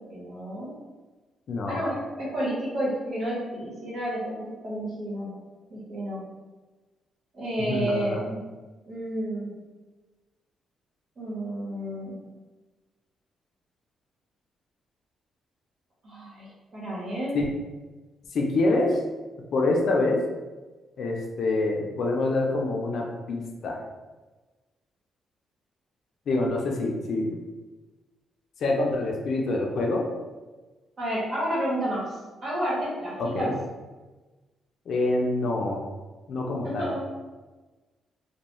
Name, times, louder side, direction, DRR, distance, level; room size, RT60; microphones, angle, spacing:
voice 1, 0.1-0.7 1.7-5.3 5.7-6.2 7.3-8.4 8.9-9.5 11.2-12.2 16.0-17.4 31.0-32.2 32.4-33.5 36.6-37.0, right 1 dB, 55° right, -6 dB, 1.1 m, -30 dB
voice 2, 1.5-1.8 7.6-8.2 17.3-17.5 18.3-19.0 19.5-20.2 21.0-23.8 26.3-27.4 28.6-30.0 33.2-33.5 34.9-35.8 36.3-36.9, left 2 dB, 65° left, 0 dB, 0.5 m, -26 dB
2.3 x 2.2 x 3.0 m, 1.2 s
cardioid pair, 105°, 0 cm